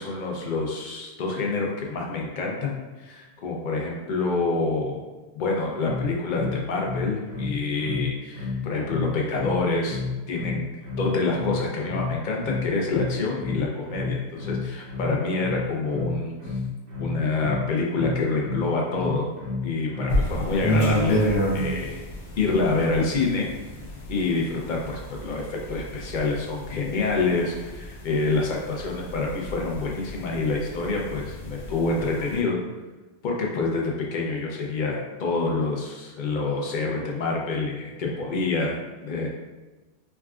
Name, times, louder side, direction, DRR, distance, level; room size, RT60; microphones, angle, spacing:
voice 1, 0.0-5.0 5.3-10.0 10.3-10.6 10.9-16.5 17.0-19.3 19.6-21.2 21.5-22.0 22.4-23.5 24.1-32.6 33.2-39.3, left 3 dB, 55° left, -1 dB, 0.6 m, -27 dB
sound 1, 5.8-20.2, left 4 dB, 60° right, 0.8 m, -31 dB
sound 2, 20.1-32.4, equal, 85° left, 0.9 m, -30 dB
3.5 x 2.3 x 2.3 m, 1.2 s
omnidirectional pair, 1.2 m